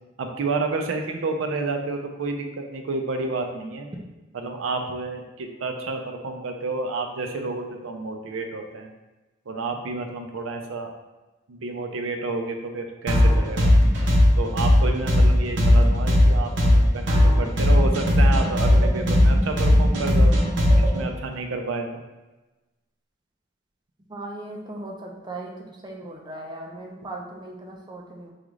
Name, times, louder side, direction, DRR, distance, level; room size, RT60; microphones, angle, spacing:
voice 1, 0.2-3.9 4.3-8.9 9.5-10.9 11.5-13.7 14.4-20.3 20.8-21.9, right 3 dB, 85° right, 4 dB, 0.5 m, -30 dB
sound 1, 13.1-21.0, left 1 dB, 65° right, 0.8 m, -17 dB
voice 2, 24.1-25.5 25.8-28.3, right 2 dB, 20° right, 0 dB, 0.5 m, -37 dB
4.8 x 2.4 x 3.1 m, 1.1 s
head